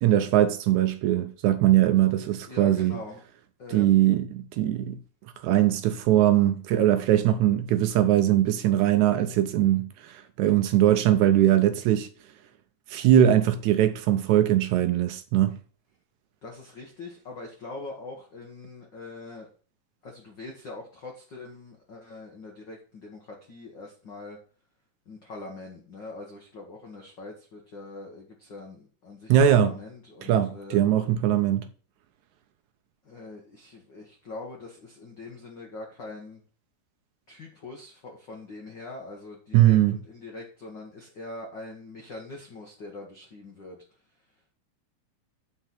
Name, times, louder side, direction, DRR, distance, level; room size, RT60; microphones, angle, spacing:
voice 1, 0.0-3.0 3.7-5.0 5.4-12.1 12.9-15.6 29.3-29.7 30.3-31.7 39.5-40.0, right 12 dB, 80° right, 1.8 m, -21 dB
voice 2, 2.5-3.2 3.6-4.1 16.4-19.5 20.0-24.4 25.0-30.8 33.0-36.4 37.3-43.8, left 2 dB, 60° left, 1.2 m, -42 dB
8.0 x 4.5 x 5.9 m
omnidirectional pair, 3.9 m